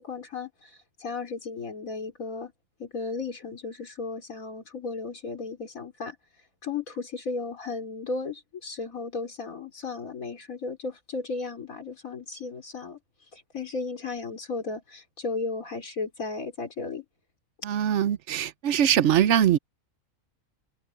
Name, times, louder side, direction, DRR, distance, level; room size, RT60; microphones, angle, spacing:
voice 1, 0.0-2.5 2.8-13.0 13.3-17.1, left 4 dB, 90° left, 4.0 m, -35 dB
voice 2, 17.6-19.6, right 10 dB, 65° right, 1.0 m, -22 dB
omnidirectional pair, 1.4 m